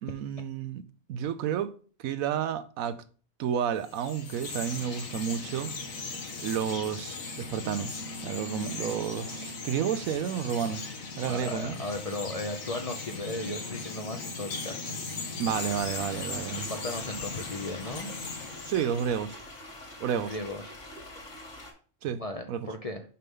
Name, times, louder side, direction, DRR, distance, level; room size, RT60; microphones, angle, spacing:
voice 1, 0.0-0.8 1.1-1.7 2.0-3.0 3.4-5.7 6.4-8.0 8.2-10.9 11.2-11.8 15.4-16.7 18.6-19.4 20.0-20.4 22.0-22.2 22.5-22.7, right 8 dB, 85° right, 1.1 m, -31 dB
Chirp tweet, 3.8-19.4, left 4 dB, 85° left, 1.7 m, -38 dB
voice 2, 11.3-14.9 16.5-18.1 20.3-20.8 22.2-23.0, left 2 dB, 40° left, 0.5 m, -36 dB
sound 1, 15.4-21.7, left 1 dB, 60° left, 2.8 m, -45 dB
6.5 x 5.5 x 3.6 m
omnidirectional pair, 1.4 m